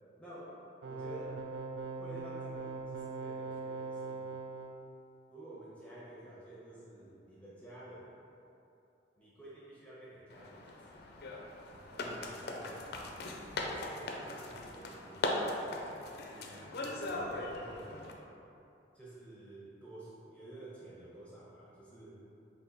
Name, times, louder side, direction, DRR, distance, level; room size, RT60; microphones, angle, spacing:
voice 1, 0.2-0.5 0.9-1.4 2.0-4.3 5.3-8.1 9.2-11.1 11.9-12.9 13.6-15.4 16.3-18.2 18.9-22.2, right 1 dB, 5° left, -9 dB, 0.7 m, -51 dB
sound 1, 0.8-4.7, right 4 dB, 70° right, 0.3 m, -41 dB
sound 2, 10.3-18.1, left 2 dB, 60° left, 0.4 m, -39 dB
3.5 x 2.6 x 3.9 m, 2.8 s
head